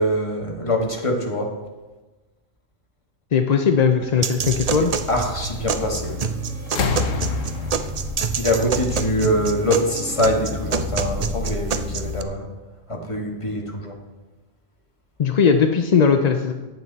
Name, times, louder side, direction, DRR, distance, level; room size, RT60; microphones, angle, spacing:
voice 1, 0.0-1.5 4.8-6.2 8.4-12.5 12.9-13.9, equal, 25° left, 1 dB, 1.8 m, -24 dB
voice 2, 3.3-4.9 15.2-16.5, left 6 dB, 45° left, 5 dB, 0.5 m, -18 dB
sound 1, 4.0-12.2, left 2 dB, 10° right, 2.2 m, -32 dB
sound 2, 4.2-12.2, right 6 dB, 50° right, 0.4 m, -27 dB
sound 3, 6.0-6.3 6.6-9.4 10.5-10.6, left 4 dB, 70° left, 1.5 m, -28 dB
14.5 x 9.5 x 4.1 m, 1.2 s
omnidirectional pair, 1.4 m